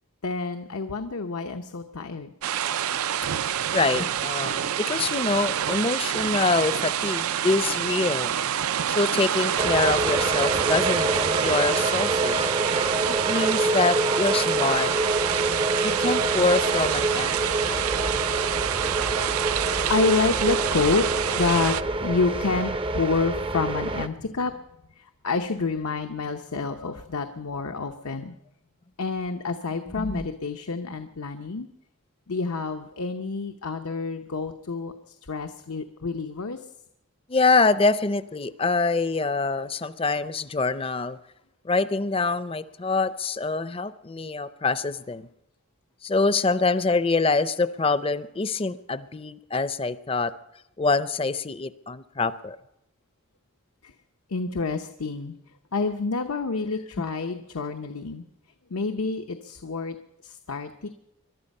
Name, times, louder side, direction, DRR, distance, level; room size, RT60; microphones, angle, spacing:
voice 1, 0.2-2.3 19.3-21.7 22.0-24.6 25.0-28.4 29.0-31.7 32.3-36.7 53.8-53.9 54.3-55.3 55.7-58.2 58.7-60.0 60.2-60.9, left 4 dB, 90° left, 6 dB, 0.9 m, -28 dB
sound 1, 2.4-21.8, right 10 dB, 85° right, 0.5 m, -27 dB
voice 2, 3.7-8.3 8.9-12.5 13.1-14.9 15.8-17.4 17.7-17.8 30.0-30.2 37.3-41.2 41.6-45.3 46.0-50.3 50.8-52.6, left 3 dB, 25° left, 14 dB, 0.5 m, -25 dB
sound 2, 9.6-24.1, right 2 dB, 25° right, 0.5 m, -27 dB
22.0 x 12.0 x 5.4 m, 0.84 s
head